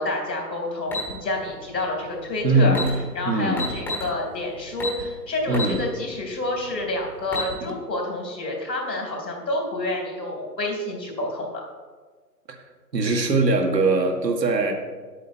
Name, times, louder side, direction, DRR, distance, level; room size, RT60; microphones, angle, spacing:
voice 1, 0.0-2.8 3.1-11.6, left 2 dB, 75° left, 1 dB, 3.4 m, -28 dB
sound 1, 0.9-1.1 2.3-2.4 2.7-2.9 3.6-4.1 4.8-5.0 5.5-5.8 6.2-6.3 7.1-7.5, left 2 dB, 5° left, 1.1 m, -28 dB
voice 2, 2.4-2.9 3.2-3.7 5.5-5.9 12.5-12.6 12.9-14.7, right 2 dB, 75° right, 2 dB, 2.0 m, -21 dB
10.5 x 8.3 x 4.5 m, 1.4 s
figure-of-eight pair, 140°, 50 cm